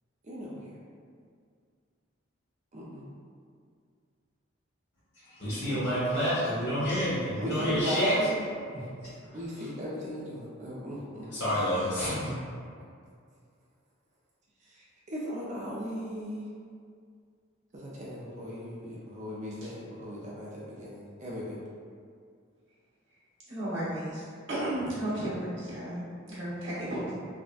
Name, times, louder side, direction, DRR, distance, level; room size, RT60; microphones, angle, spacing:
voice 1, 0.2-0.8 2.7-3.1 5.7-6.9 7.4-8.4 9.3-11.9 14.6-16.5 17.7-21.6, equal, 35° right, -6 dB, 0.4 m, -38 dB
voice 2, 5.2-8.3 8.7-9.4 11.3-12.3, equal, 60° left, -10 dB, 1.4 m, -29 dB
voice 3, 23.5-27.1, right 1 dB, 65° right, -9 dB, 1.1 m, -34 dB
3.6 x 2.1 x 2.4 m, 2.2 s
head